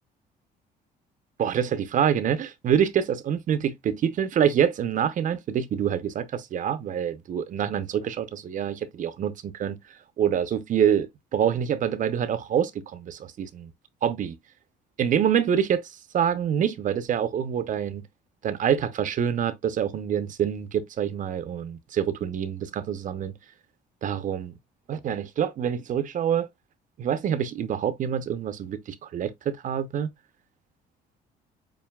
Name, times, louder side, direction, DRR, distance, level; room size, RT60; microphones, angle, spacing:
voice 1, 1.4-9.8 10.2-13.7 14.0-14.4 15.0-18.0 18.4-23.3 24.0-24.5 24.9-26.5 27.0-30.1, right 8 dB, 50° right, 0.8 m, -26 dB
7.2 x 2.8 x 2.3 m
cardioid pair, 110°, 17 cm